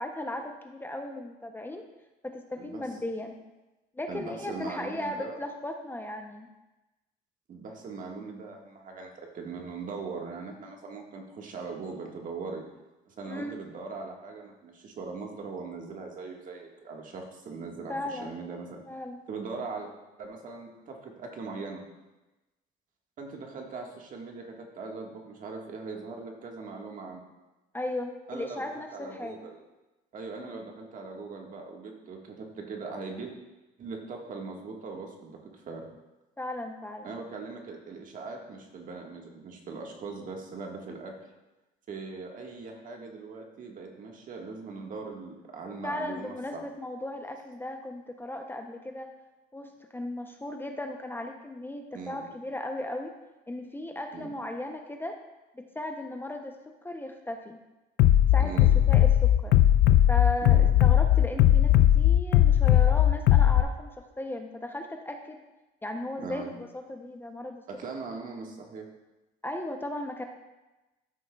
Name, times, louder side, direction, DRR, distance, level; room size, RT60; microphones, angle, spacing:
voice 1, 0.0-1.8 2.2-3.4 4.0-6.5 13.3-13.5 17.9-18.3 18.9-19.2 27.7-29.4 30.4-30.6 36.4-37.1 45.8-49.1 49.5-53.1 53.5-55.2 55.5-56.6 56.8-57.6 58.3-58.5 58.9-59.5 60.1-65.4 65.8-67.6 69.4-70.2, left 1 dB, 10° left, 4 dB, 0.6 m, -36 dB
voice 2, 4.1-5.4 7.5-12.6 13.1-18.8 19.3-19.9 20.2-21.8 23.2-27.2 28.3-29.6 30.1-33.3 33.8-35.9 37.0-41.2 41.9-46.6 51.9-52.2 54.1-54.3 58.4-58.7 60.4-60.7 66.2-66.5 67.7-68.9, right 4 dB, 50° right, 1 dB, 1.5 m, -40 dB
Bass drum, 58.0-63.6, left 12 dB, 75° left, 0.4 m, -19 dB
13.0 x 6.3 x 2.3 m, 1.1 s
cardioid pair, 110°, 17 cm